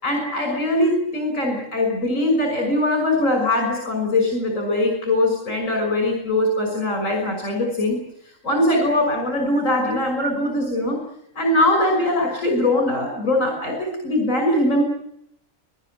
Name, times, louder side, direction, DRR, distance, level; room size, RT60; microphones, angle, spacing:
voice 1, 0.0-8.0 8.2-11.0 11.3-14.9, left 1 dB, 80° left, 2 dB, 6.4 m, -21 dB
21.5 x 20.5 x 9.3 m, 0.73 s
omnidirectional pair, 1.3 m